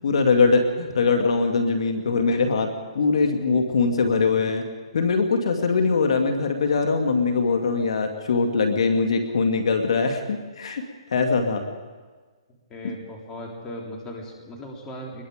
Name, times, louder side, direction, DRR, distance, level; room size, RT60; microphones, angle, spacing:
voice 1, 0.0-2.7 2.9-4.6 4.9-10.8 11.1-11.6, left 4 dB, 65° left, 5 dB, 2.3 m, -22 dB
voice 2, 12.7-15.2, equal, 15° left, -1 dB, 3.5 m, -37 dB
24.0 x 21.0 x 5.1 m, 1.4 s
hypercardioid pair, 150°, 3 cm